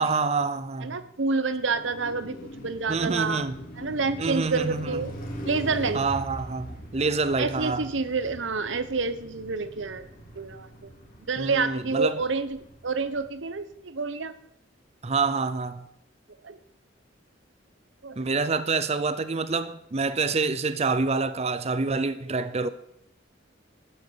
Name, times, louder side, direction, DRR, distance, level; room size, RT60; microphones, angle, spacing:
voice 1, 0.0-1.0 2.9-3.5 4.2-5.0 5.9-7.9 11.4-12.2 15.0-15.9 18.2-22.7, right 4 dB, 35° right, 0.6 m, -27 dB
voice 2, 0.8-3.5 3.8-5.1 5.4-6.0 7.4-10.1 10.4-10.9 11.3-14.3 16.4-16.6 18.0-18.2, right 4 dB, 80° right, 1.0 m, -28 dB
Car passing by, 1.4-13.6, equal, 45° left, 3.7 m, -41 dB
12.0 x 7.8 x 7.7 m
head